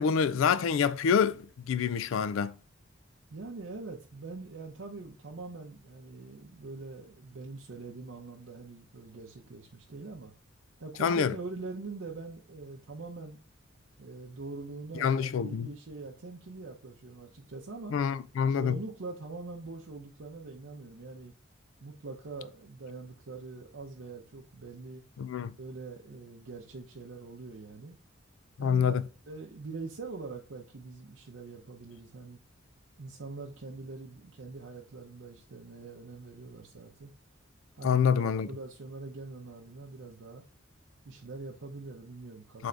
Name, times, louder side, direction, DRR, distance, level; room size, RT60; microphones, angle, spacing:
voice 1, 0.0-2.5 11.0-11.3 15.0-15.7 17.9-18.8 25.2-25.5 28.6-29.0 37.8-38.5 42.6-42.7, left 6 dB, 75° left, 0.3 m, -26 dB
voice 2, 3.3-10.3 10.8-13.4 14.0-18.0 18.5-21.3 21.8-25.0 25.6-28.0 28.6-32.4 33.0-37.1 37.8-40.5 41.0-42.7, right 3 dB, 70° right, 0.6 m, -43 dB
3.8 x 3.4 x 3.3 m
head